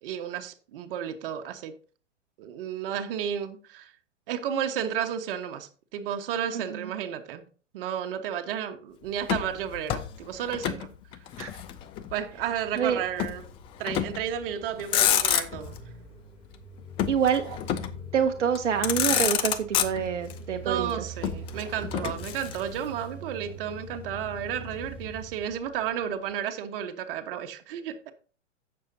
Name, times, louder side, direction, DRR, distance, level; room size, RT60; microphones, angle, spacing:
voice 1, 0.0-1.7 2.4-3.9 4.3-7.5 7.7-10.9 12.1-13.5 13.8-15.8 17.4-17.6 20.6-28.1, right 9 dB, 50° right, 1.3 m, -32 dB
voice 2, 6.5-6.9 11.4-11.5 12.8-13.0 17.1-17.4 18.1-20.9, right 8 dB, 70° right, 1.0 m, -26 dB
Motor vehicle (road), 9.2-10.9 11.1-12.2 13.2-13.4 13.9-14.3 14.7-15.8 17.0-18.0 18.6-18.7 18.8-20.3 21.2-22.9, left 11 dB, 15° left, 0.4 m, -28 dB
sound 1, 12.0-26.3, right 1 dB, 5° right, 3.0 m, -44 dB
15.5 x 6.7 x 2.7 m
figure-of-eight pair, 105°, 37 cm